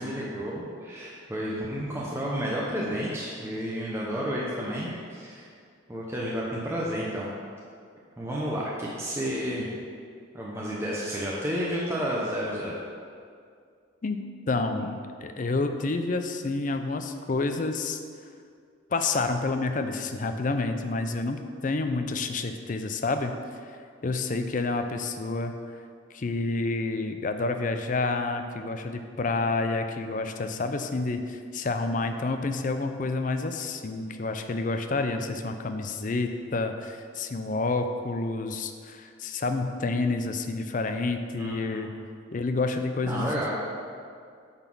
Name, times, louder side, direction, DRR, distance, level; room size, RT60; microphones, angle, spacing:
voice 1, 0.0-5.5 5.9-7.3 8.2-9.7 10.3-12.8 41.4-41.9 43.0-43.5, equal, 15° right, -5 dB, 0.8 m, -31 dB
voice 2, 14.0-18.0 18.9-23.3 24.0-25.5 26.1-41.9 42.3-43.3, left 3 dB, 40° left, 7 dB, 0.5 m, -29 dB
8.8 x 4.1 x 6.0 m, 2.2 s
head